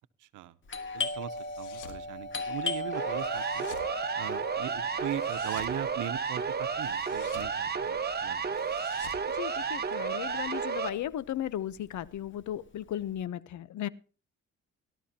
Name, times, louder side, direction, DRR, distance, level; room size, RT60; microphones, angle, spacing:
voice 1, 0.2-0.5 0.9-3.7 4.2-8.6, right 12 dB, 80° right, 14 dB, 0.9 m, -40 dB
Doorbell, 0.7-10.1 10.3-10.4 11.0-11.4 11.7-13.1, left 3 dB, 40° left, 2.2 m, -38 dB
sound 1, 1.3-2.0 3.2-3.9 5.1-5.8 6.8-7.6 8.5-10.0, left 8 dB, 90° left, 2.2 m, -50 dB
Siren, 2.9-10.9, right 6 dB, 30° right, 1.4 m, -32 dB
voice 2, 9.3-13.9, left 11 dB, 70° left, 18 dB, 0.9 m, -36 dB
18.5 x 12.5 x 2.9 m, 0.36 s
cardioid pair, 90°, 30 cm